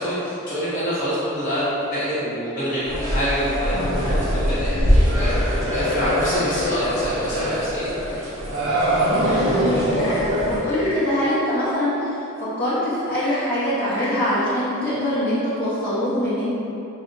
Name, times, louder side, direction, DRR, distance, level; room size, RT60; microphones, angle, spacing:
voice 1, 0.0-8.2, equal, 35° left, -12 dB, 0.9 m, -26 dB
sound 1, 2.8-10.6, equal, 65° right, 0.8 m, -22 dB
voice 2, 9.4-16.5, left 1 dB, 10° left, -15 dB, 0.8 m, -24 dB
Frog / Percussion / Wood, 9.8-11.1 13.1-14.2, left 1 dB, 75° left, 1.2 m, -35 dB
4.8 x 2.0 x 2.6 m, 3.0 s
head